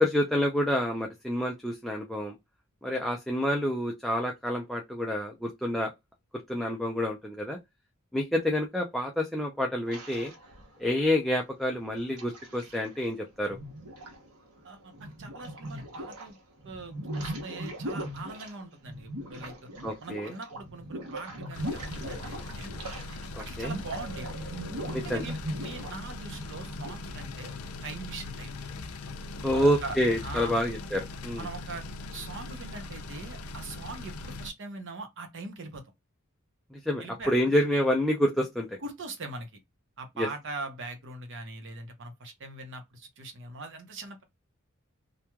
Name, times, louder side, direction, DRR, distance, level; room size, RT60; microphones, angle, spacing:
voice 1, 0.0-2.4 2.8-5.9 6.5-7.6 8.1-10.3 10.8-13.6 19.8-20.3 23.3-23.7 24.9-25.2 29.4-31.5 36.7-38.8 40.2-40.3, left 1 dB, ahead, 0.4 m, -28 dB
sound 1, 9.9-11.0 11.7-13.0 13.4-16.3 16.6-23.3 23.5-26.9, right 1 dB, 90° right, 0.9 m, -39 dB
voice 2, 14.6-16.4 16.6-19.7 20.0-22.7 23.4-24.3 25.0-27.6 27.8-28.5 29.5-30.0 30.2-30.6 31.4-31.8 32.1-35.8 37.0-37.3 38.8-39.6 40.0-44.2, right 3 dB, 60° right, 0.7 m, -41 dB
sound 2, 21.5-34.5, left 2 dB, 75° left, 0.4 m, -40 dB
3.0 x 2.2 x 2.2 m
head